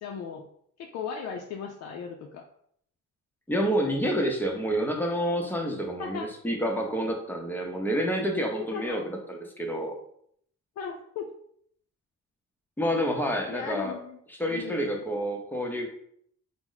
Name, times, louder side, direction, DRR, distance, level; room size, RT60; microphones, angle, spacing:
voice 1, 0.0-0.5 0.8-2.4 6.0-6.3 8.7-9.0 10.8-11.3 13.5-14.2 14.5-14.9, left 6 dB, 60° left, 1 dB, 0.4 m, -37 dB
voice 2, 3.5-9.9 12.8-14.0 14.3-15.9, equal, 5° left, 1 dB, 0.6 m, -28 dB
2.9 x 2.1 x 3.8 m, 0.67 s
cardioid pair, 90°, 30 cm